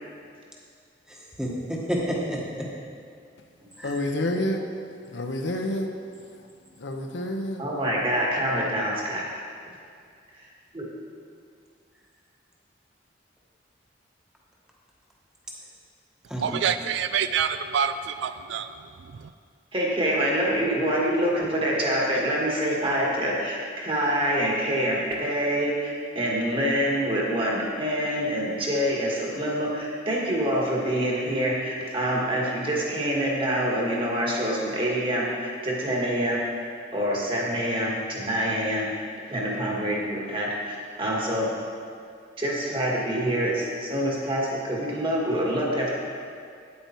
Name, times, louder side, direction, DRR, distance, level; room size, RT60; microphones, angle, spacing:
voice 1, 1.1-2.7 3.8-4.0 16.3-16.6, equal, 5° right, -3 dB, 1.2 m, -30 dB
voice 2, 3.8-4.6 5.1-5.9 6.8-7.6, left 1 dB, 75° left, 4 dB, 0.8 m, -28 dB
voice 3, 7.6-9.2 10.7-10.8 19.7-36.4 36.9-38.9 39.3-41.5 42.4-45.9, equal, 30° right, -3 dB, 1.6 m, -26 dB
voice 4, 16.4-19.3, right 7 dB, 75° right, 11 dB, 0.3 m, -27 dB
9.1 x 8.6 x 4.4 m, 2.3 s
head